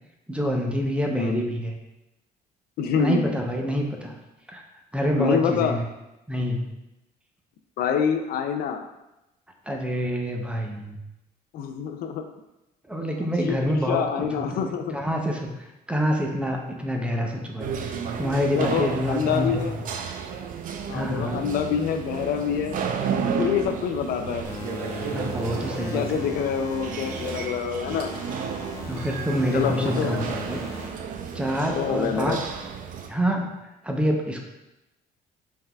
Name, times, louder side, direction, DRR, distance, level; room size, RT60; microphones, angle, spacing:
voice 1, 0.3-1.7 3.0-4.2 4.5-4.6 4.9-5.9 6.3-6.7 9.7-11.0 12.9-19.8 20.9-21.5 25.1-26.2 28.9-30.6 31.3-32.4 33.1-34.4, equal, 5° right, 1 dB, 0.6 m, -27 dB
voice 2, 1.1-1.4 2.8-3.4 5.2-5.8 7.8-8.9 11.5-12.2 13.5-13.6 13.9-15.0 18.6-19.8 20.9-22.8 23.4-24.4 25.9-28.1 29.5-30.3 31.6-32.4, left 7 dB, 65° left, 6 dB, 0.4 m, -26 dB
sound 1, 17.6-33.1, right 6 dB, 55° right, 0.5 m, -32 dB
sound 2, 24.4-27.4 27.9-30.9, left 1 dB, 15° left, 0.9 m, -37 dB
5.5 x 3.5 x 2.3 m, 0.93 s
cardioid pair, 110°, 17 cm